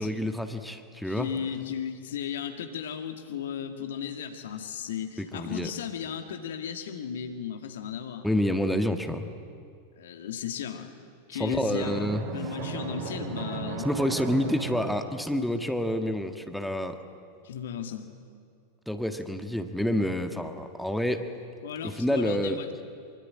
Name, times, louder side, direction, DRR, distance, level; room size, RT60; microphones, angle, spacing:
voice 1, 0.0-1.3 5.2-5.7 8.2-9.3 11.4-12.2 13.8-17.0 18.9-21.3 21.8-22.6, equal, ahead, 6 dB, 1.6 m, -28 dB
voice 2, 1.0-8.3 10.0-10.9 11.3-13.9 17.4-18.1 21.6-22.7, left 8 dB, 60° left, 6 dB, 2.1 m, -35 dB
Drum, 11.8-15.6, right 5 dB, 50° right, 4.9 m, -36 dB
25.0 x 23.5 x 8.7 m, 2.2 s
figure-of-eight pair, 90°, 0 cm